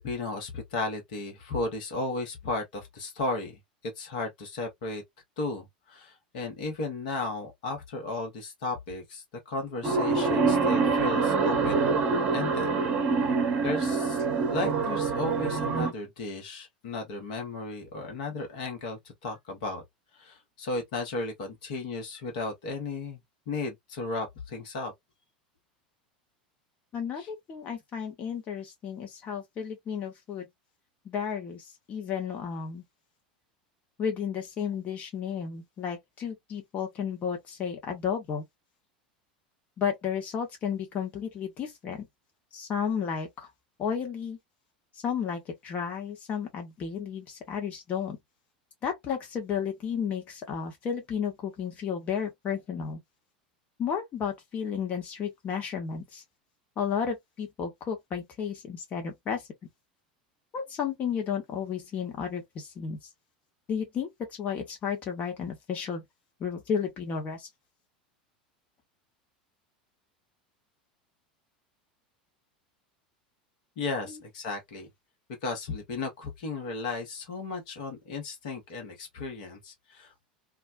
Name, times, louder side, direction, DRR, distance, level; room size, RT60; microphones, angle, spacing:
voice 1, 0.0-5.0 5.4-11.9 12.3-12.7 13.1-13.3 13.6-19.8 20.1-23.2 23.5-24.9 27.2-27.3 73.8-74.9 75.4-80.3, left 3 dB, 55° left, 1.0 m, -35 dB
sound 1, 9.8-15.9, right 4 dB, 30° right, 0.8 m, -25 dB
voice 2, 26.9-30.5 31.0-32.8 34.0-38.4 39.8-42.1 42.5-43.5 43.8-44.4 45.0-48.2 48.8-53.0 53.8-56.2 56.8-59.4 60.5-63.0 63.7-64.1 64.4-66.0 66.4-67.5 74.0-74.2, left 7 dB, 35° left, 0.9 m, -33 dB
2.4 x 2.1 x 2.4 m
figure-of-eight pair, 80°, 5 cm